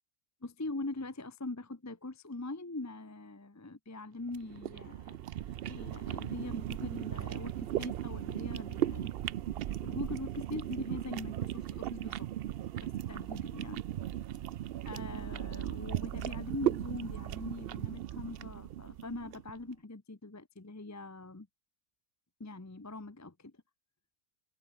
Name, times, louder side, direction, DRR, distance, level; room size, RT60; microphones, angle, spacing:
voice 1, 0.4-5.2 5.4-9.1 9.6-12.3 12.8-13.8 14.8-21.5 22.4-23.5, left 2 dB, 15° left, 0.7 m, -42 dB
sound 1, 4.3-19.5, right 12 dB, 70° right, 0.5 m, -37 dB
omnidirectional pair, 1.6 m